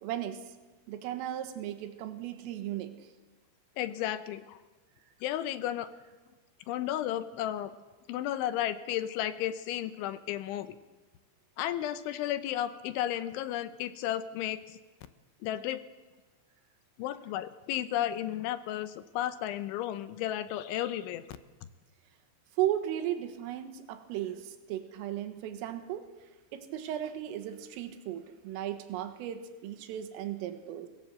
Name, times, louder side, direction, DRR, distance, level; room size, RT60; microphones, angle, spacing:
voice 1, 0.0-0.4 0.9-2.9 22.6-26.1 26.5-30.9, right 11 dB, 85° right, 8 dB, 4.0 m, -35 dB
voice 2, 3.8-4.6 5.2-5.9 6.7-7.7 8.1-10.8 11.6-14.8 15.4-15.8 17.0-21.2, left 12 dB, 80° left, 12 dB, 3.1 m, -33 dB
23.5 x 17.5 x 7.6 m, 1.2 s
omnidirectional pair, 5.7 m